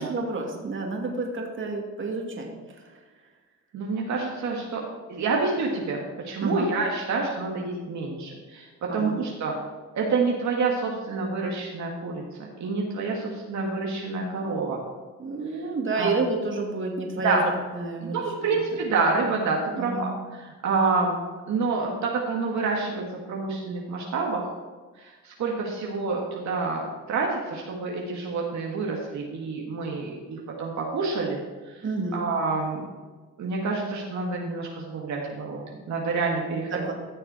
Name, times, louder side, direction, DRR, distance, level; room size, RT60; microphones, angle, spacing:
voice 1, 0.0-2.5 2.8-2.9 6.4-6.7 8.9-9.2 15.2-17.4 17.7-18.6 19.8-20.2 31.8-32.2 36.5-36.9, right 3 dB, 40° right, 0 dB, 2.5 m, -30 dB
voice 2, 3.7-4.8 5.1-9.5 10.0-12.2 12.6-14.8 16.0-16.1 17.2-17.4 18.0-21.1 21.5-24.4 25.0-31.4 32.1-32.9 33.4-35.6 35.9-36.8, right 4 dB, 70° right, -2 dB, 2.0 m, -28 dB
14.5 x 6.7 x 4.3 m, 1.3 s
cardioid pair, 90°, 30 cm